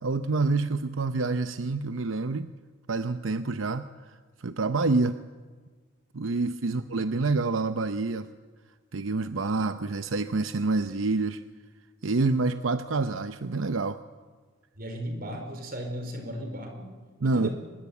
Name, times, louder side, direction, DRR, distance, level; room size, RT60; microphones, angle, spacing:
voice 1, 0.0-2.5 2.9-5.2 6.1-8.3 8.9-11.4 12.0-14.0 17.2-17.5, right 3 dB, 85° right, 10 dB, 0.7 m, -27 dB
voice 2, 6.7-7.1 14.7-16.9 17.2-17.5, equal, 50° right, 5 dB, 4.7 m, -36 dB
24.0 x 21.0 x 8.4 m, 1.4 s
head